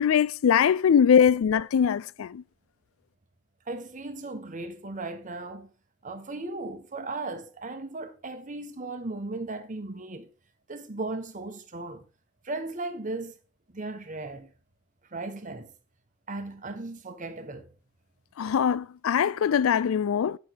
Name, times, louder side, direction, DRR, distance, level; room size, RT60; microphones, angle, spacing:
voice 1, 0.0-2.4 18.4-20.4, left 7 dB, 80° left, 0.3 m, -22 dB
voice 2, 3.7-5.7 6.0-10.3 10.7-12.0 12.4-13.4 13.7-14.5 15.1-15.7 16.3-17.7, right 2 dB, 40° right, 1.1 m, -36 dB
8.7 x 5.4 x 4.5 m
head